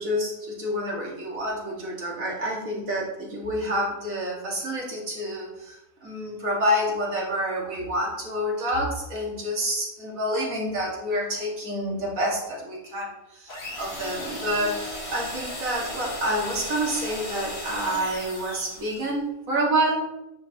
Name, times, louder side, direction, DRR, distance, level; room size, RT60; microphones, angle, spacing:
voice 1, 0.0-14.8 15.1-20.0, equal, 75° right, -3 dB, 2.3 m, -28 dB
sound 1, 13.5-19.1, left 1 dB, 70° left, 2.7 m, -36 dB
9.5 x 5.5 x 2.9 m, 0.94 s
omnidirectional pair, 1.4 m